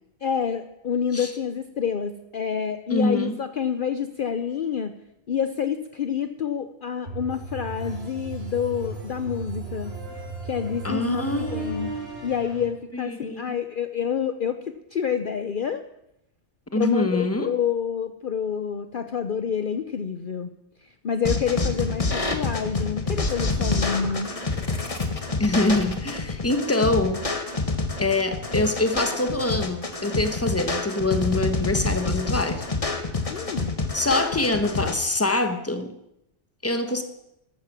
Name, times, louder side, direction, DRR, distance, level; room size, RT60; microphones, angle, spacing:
voice 1, 0.2-4.9 5.3-10.0 10.4-11.9 12.2-15.8 16.7-20.5 21.0-24.3 33.3-33.8, left 7 dB, 50° left, 10 dB, 0.9 m, -28 dB
voice 2, 2.9-3.4 10.8-12.2 12.9-13.6 16.7-17.5 25.4-27.2 28.0-32.7 33.9-35.9 36.6-37.0, left 2 dB, 10° left, 8 dB, 1.3 m, -25 dB
sound 1, 7.0-12.7, right 3 dB, 60° right, 5.0 m, -36 dB
sound 2, 21.2-34.9, left 3 dB, 30° left, 1.6 m, -27 dB
13.5 x 12.5 x 7.3 m, 0.83 s
omnidirectional pair, 1.2 m